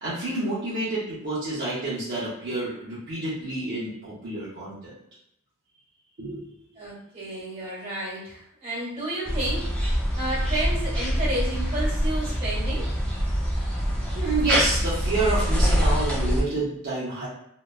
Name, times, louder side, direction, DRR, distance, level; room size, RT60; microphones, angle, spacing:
voice 1, 0.0-4.9 6.2-6.5 14.2-17.3, right 2 dB, 55° right, -9 dB, 0.7 m, -28 dB
voice 2, 6.8-9.6 10.1-12.9, right 1 dB, 30° right, -9 dB, 1.4 m, -31 dB
sound 1, 9.2-16.4, equal, 5° left, 0.4 m, -25 dB
2.9 x 2.2 x 2.2 m, 0.75 s
head